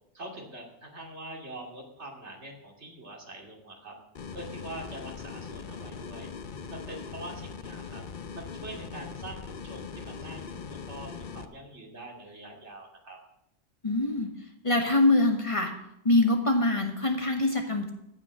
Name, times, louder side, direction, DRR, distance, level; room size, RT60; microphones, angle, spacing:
voice 1, 0.1-3.9 4.3-6.3 6.7-8.0 8.3-13.2, right 1 dB, 75° right, 1 dB, 2.8 m, -44 dB
sound 1, 4.2-11.5, left 5 dB, 50° left, 0.8 m, -41 dB
voice 2, 13.8-14.3 14.6-15.7 16.0-17.9, left 2 dB, 30° left, 4 dB, 1.4 m, -24 dB
15.0 x 6.1 x 7.4 m, 0.82 s
omnidirectional pair, 1.2 m